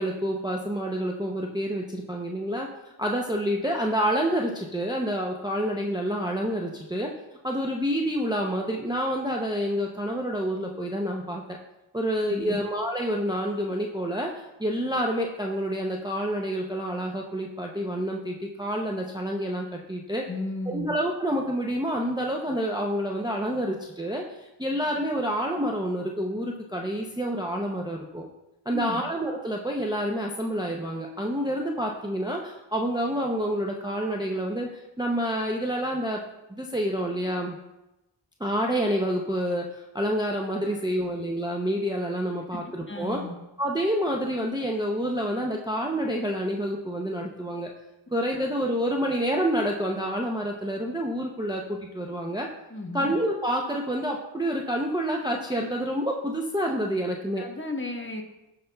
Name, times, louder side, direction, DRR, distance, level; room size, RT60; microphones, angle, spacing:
voice 1, 0.0-2.7 3.0-7.1 7.4-11.6 11.9-14.3 14.6-20.2 20.7-24.3 24.6-28.3 28.7-34.7 35.0-36.2 36.5-37.6 38.4-43.2 43.6-47.7 48.1-52.5 52.9-57.4, equal, 10° right, 0 dB, 0.6 m, -28 dB
voice 2, 12.3-12.6 20.3-20.9 28.7-29.0 42.9-43.3 48.4-48.5 52.7-53.1 57.4-58.2, left 2 dB, 25° left, 2 dB, 1.1 m, -34 dB
13.5 x 5.1 x 2.3 m, 0.95 s
wide cardioid pair, 55°, 48 cm